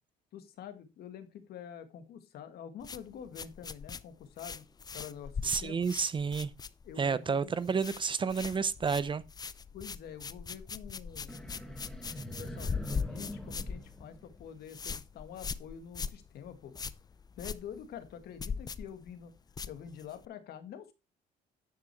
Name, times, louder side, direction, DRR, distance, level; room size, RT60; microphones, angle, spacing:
voice 1, 0.3-4.7 4.9-5.9 6.8-7.6 9.7-11.4 12.3-16.7 17.4-19.4 19.7-20.9, left 8 dB, 70° left, 1.8 m, -47 dB
sound 1, 2.8-7.2 7.4-8.0 8.3-20.3, left 5 dB, 25° left, 0.5 m, -41 dB
voice 2, 5.4-6.5 7.0-9.2, right 5 dB, 30° right, 0.6 m, -30 dB
sound 2, 11.3-14.7, equal, 5° left, 1.8 m, -43 dB
9.9 x 6.2 x 4.5 m
cardioid pair, 110°, 17 cm